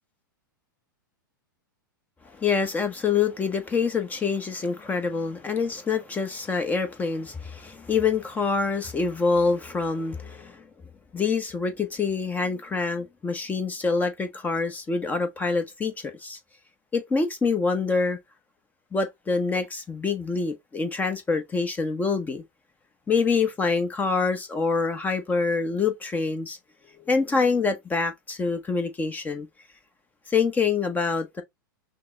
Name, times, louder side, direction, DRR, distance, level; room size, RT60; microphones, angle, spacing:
voice 1, 2.3-10.6 11.1-15.9 16.2-16.4 16.9-18.2 18.9-22.4 23.1-26.6 27.1-29.5 30.3-31.4, left 4 dB, 15° left, 1.0 m, -26 dB
5.8 x 2.1 x 3.8 m
hypercardioid pair, 105°, 11 cm